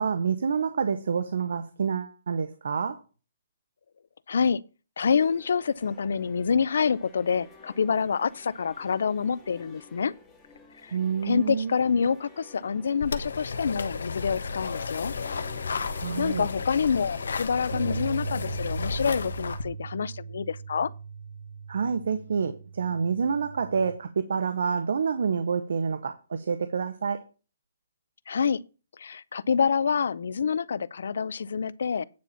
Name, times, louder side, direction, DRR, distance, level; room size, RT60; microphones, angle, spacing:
voice 1, 0.0-3.0 10.9-11.7 16.0-16.5 21.7-27.2, right 6 dB, 70° right, 0.9 m, -28 dB
voice 2, 4.3-4.6 5.0-10.1 10.8-10.9 11.2-15.1 15.8-15.9 16.2-20.9 28.3-28.6 29.0-32.0, left 6 dB, 70° left, 0.5 m, -27 dB
sound 1, 5.1-18.2, left 3 dB, 10° left, 1.8 m, -53 dB
sound 2, 13.0-19.6, left 5 dB, 90° left, 1.2 m, -33 dB
sound 3, 17.7-24.0, right 6 dB, 40° right, 0.6 m, -39 dB
9.6 x 4.2 x 7.1 m
hypercardioid pair, 170°, 0 cm